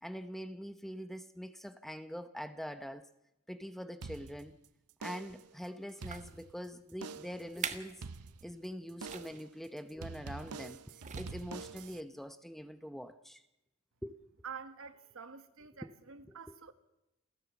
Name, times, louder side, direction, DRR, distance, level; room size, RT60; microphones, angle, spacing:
voice 1, 0.0-3.1 3.5-4.6 5.0-8.0 8.4-10.8 11.1-13.4 14.0-14.2 15.8-15.9 16.3-16.6, equal, ahead, 0.8 m, -44 dB
sound 1, 4.0-4.6 5.0-5.5 5.9-6.6 7.0-7.5 8.0-8.6 9.0-9.5 10.0-12.0, right 4 dB, 90° right, 0.7 m, -46 dB
sound 2, 5.2-5.4 5.9-6.4 7.0-7.1 7.5-8.0 8.3-8.5 9.0-9.4 10.4-10.7 11.0-11.6 12.2-12.3, right 6 dB, 35° right, 1.5 m, -43 dB
voice 2, 14.4-16.7, right 6 dB, 65° right, 1.5 m, -48 dB
29.0 x 14.0 x 7.1 m
head